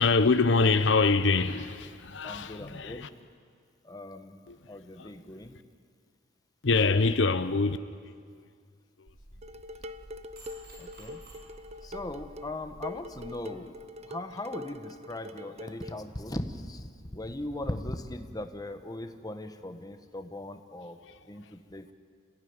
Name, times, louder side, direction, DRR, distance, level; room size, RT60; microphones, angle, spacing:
voice 1, 0.0-3.1 4.5-4.6 5.0-5.1 6.6-7.8 8.3-8.4 21.0-21.2, left 4 dB, 70° left, 0.8 m, -25 dB
voice 2, 2.2-3.0 3.8-4.4 4.7-5.5 10.8-11.2 11.8-13.8 14.0-21.0 21.3-21.9, left 1 dB, 20° left, 1.2 m, -39 dB
sound 1, 9.1-13.4, right 1 dB, 60° right, 6.5 m, -51 dB
Dishes pots and pans, 9.4-16.0, left 1 dB, 35° right, 0.8 m, -44 dB
27.0 x 16.0 x 9.6 m
head